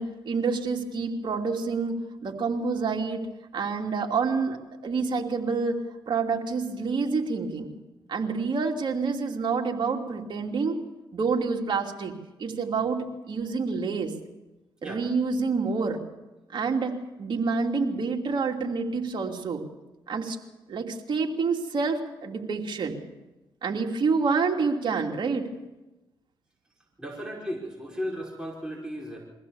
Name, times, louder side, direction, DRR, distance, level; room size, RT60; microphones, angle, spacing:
voice 1, 0.0-2.0 2.2-3.2 3.5-5.8 6.1-7.7 8.1-10.8 11.1-12.1 12.4-14.1 14.8-16.0 16.5-19.6 20.1-20.4 20.7-23.0 23.6-25.5, right 4 dB, 55° right, 2 dB, 2.9 m, -28 dB
voice 2, 27.0-29.2, equal, 10° right, -2 dB, 5.2 m, -35 dB
23.0 x 15.5 x 7.2 m, 1.1 s
cardioid pair, 70°, 9 cm